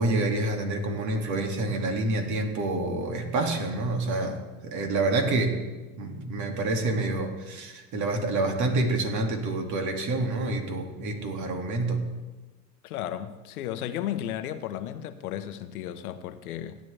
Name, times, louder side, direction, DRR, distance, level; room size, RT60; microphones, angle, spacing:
voice 1, 0.0-5.6 6.0-12.0, right 2 dB, 40° right, 3 dB, 2.3 m, -28 dB
voice 2, 12.8-16.8, left 11 dB, 85° left, 9 dB, 1.1 m, -34 dB
16.5 x 10.5 x 3.4 m, 1.2 s
supercardioid pair, 120°, 43 cm